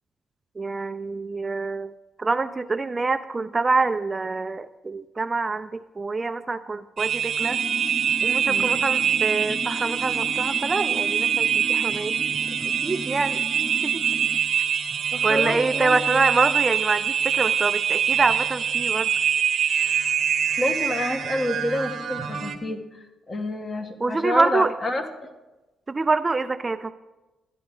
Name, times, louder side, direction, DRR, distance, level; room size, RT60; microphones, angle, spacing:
voice 1, 0.6-1.9 2.2-7.6 8.2-12.1 12.8-13.4 13.8-14.0 15.2-19.1 24.0-24.7 25.9-26.9, right 3 dB, 25° right, 12 dB, 0.3 m, -26 dB
sound 1, 7.0-22.5, right 8 dB, 60° right, 0.8 m, -24 dB
sound 2, 7.4-14.4, equal, 10° left, 0.7 m, -37 dB
voice 2, 8.5-8.8 15.1-16.0 20.6-25.3, left 1 dB, 35° left, 6 dB, 1.2 m, -29 dB
13.0 x 10.0 x 3.5 m, 1.1 s
cardioid pair, 90°, 0 cm